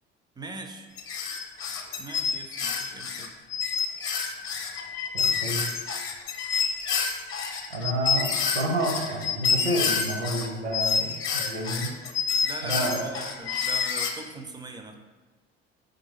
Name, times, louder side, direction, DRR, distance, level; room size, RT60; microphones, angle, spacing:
voice 1, 0.4-0.9 2.0-3.3 12.4-14.9, right 3 dB, 15° right, 5 dB, 0.3 m, -41 dB
sound 1, 1.0-10.5 10.7-14.1, left 6 dB, 40° left, 0.8 m, -28 dB
voice 2, 5.1-5.6 7.7-11.9 12.6-13.1, right 1 dB, 80° right, 1 dB, 0.7 m, -29 dB
3.7 x 3.5 x 3.3 m, 1.3 s
figure-of-eight pair, 55°, 33 cm